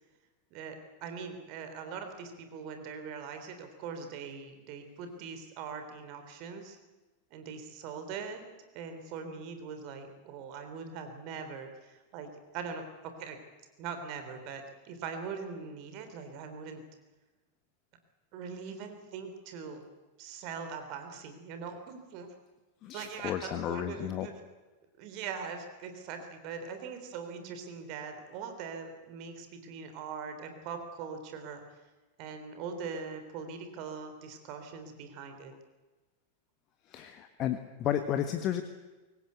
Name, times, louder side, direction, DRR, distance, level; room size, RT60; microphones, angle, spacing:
voice 1, 0.5-6.8 7.3-8.4 8.7-13.4 13.8-16.8 18.3-19.8 20.2-22.3 22.9-24.3 25.0-31.6 32.2-35.5, right 5 dB, 45° right, 7 dB, 3.7 m, -41 dB
voice 2, 22.8-24.3 36.9-38.6, left 10 dB, 35° left, 9 dB, 1.4 m, -33 dB
23.5 x 19.0 x 8.2 m, 1.2 s
figure-of-eight pair, 90°, 0 cm